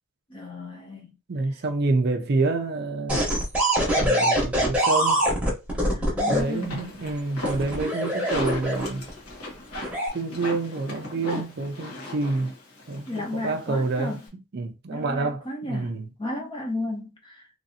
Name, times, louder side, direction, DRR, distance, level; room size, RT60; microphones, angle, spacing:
voice 1, 0.3-1.1 5.8-7.0 13.1-14.2 14.9-17.5, left 2 dB, 25° left, 0.7 m, -34 dB
voice 2, 1.3-3.3 4.0-5.3 6.3-9.1 10.1-12.5 12.9-14.2 14.5-15.4 15.7-16.0, right 3 dB, 50° right, 0.4 m, -27 dB
sound 1, 3.1-6.4 7.4-9.1 9.7-10.1, right 1 dB, 5° right, 0.9 m, -23 dB
sound 2, 6.3-14.3, left 2 dB, 85° left, 1.2 m, -37 dB
3.1 x 2.6 x 2.7 m
head